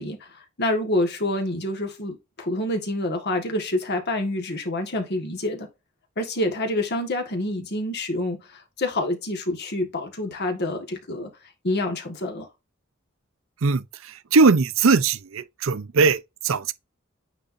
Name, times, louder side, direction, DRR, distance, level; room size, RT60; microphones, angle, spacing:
voice 1, 0.0-5.7 6.2-11.3 11.6-12.5, left 1 dB, 55° left, 1.6 m, -27 dB
voice 2, 13.6-16.7, right 4 dB, 70° right, 0.6 m, -20 dB
8.9 x 4.2 x 2.6 m
head